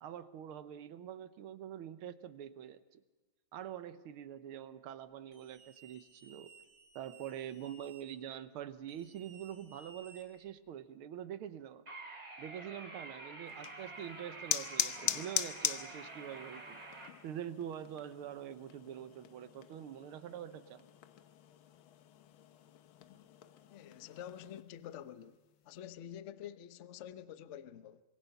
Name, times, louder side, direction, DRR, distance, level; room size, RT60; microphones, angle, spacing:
voice 1, 0.0-3.0 3.5-6.5 7.0-11.9 12.4-16.8 17.2-20.8, right 10 dB, 90° right, 1.8 m, -45 dB
sound 1, 5.3-8.0 8.9-10.7, right 4 dB, 75° right, 5.5 m, -59 dB
sound 2, 11.9-17.1, right 2 dB, 45° right, 3.8 m, -48 dB
sound 3, 13.5-24.6, left 11 dB, 75° left, 1.7 m, -41 dB
voice 2, 23.7-25.4 25.6-28.0, left 10 dB, 60° left, 0.8 m, -48 dB
25.5 x 23.0 x 5.7 m
omnidirectional pair, 2.3 m